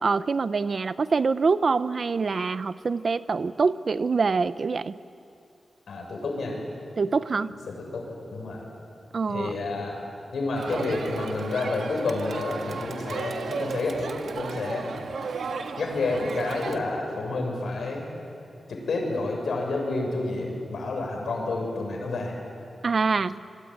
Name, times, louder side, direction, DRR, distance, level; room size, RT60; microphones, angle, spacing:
voice 1, 0.0-5.0 7.0-7.5 9.1-9.5 22.8-23.4, right 4 dB, 45° right, 14 dB, 0.6 m, -25 dB
voice 2, 5.9-6.6 7.5-8.7 9.3-14.9 15.8-18.0 18.7-22.3, left 3 dB, 80° left, 0 dB, 7.1 m, -30 dB
Crowd, 10.6-16.8, right 5 dB, 80° right, 1.7 m, -34 dB
27.0 x 22.5 x 9.3 m, 2.6 s
wide cardioid pair, 165°, 0 cm